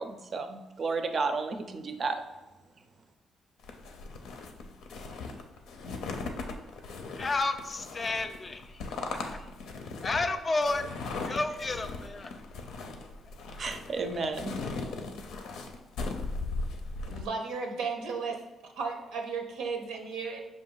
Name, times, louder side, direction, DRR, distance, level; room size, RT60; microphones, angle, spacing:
voice 1, 0.0-2.2 13.6-14.6, right 4 dB, 45° right, 8 dB, 0.5 m, -32 dB
sound 1, 3.6-17.3, left 3 dB, 85° left, 0.5 m, -38 dB
voice 2, 7.2-8.6 9.2-9.3 10.0-10.9 11.2-12.3, left 3 dB, 35° left, 8 dB, 0.4 m, -31 dB
voice 3, 17.1-18.4 18.8-20.4, right 5 dB, 90° right, 3 dB, 0.7 m, -34 dB
5.5 x 2.5 x 3.8 m, 1.1 s
cardioid pair, 90°, 0 cm